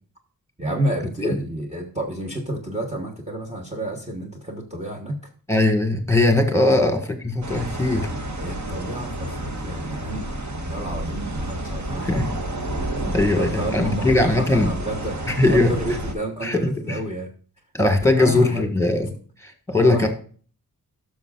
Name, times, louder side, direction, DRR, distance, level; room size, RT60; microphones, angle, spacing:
voice 1, 0.6-5.2 6.7-6.8 8.4-12.2 13.4-17.3 18.1-18.7 19.8-20.1, right 1 dB, 20° right, 3 dB, 1.1 m, -30 dB
voice 2, 5.5-7.0 7.2-8.1 12.0-12.2 13.0-14.7 15.3-15.7 16.4-17.0 17.7-19.1 19.4-20.1, left 2 dB, 10° left, 5 dB, 1.6 m, -20 dB
sound 1, 7.4-16.2, right 1 dB, 50° right, 1.2 m, -30 dB
12.5 x 6.4 x 2.4 m, 0.41 s
wide cardioid pair, 110°, 36 cm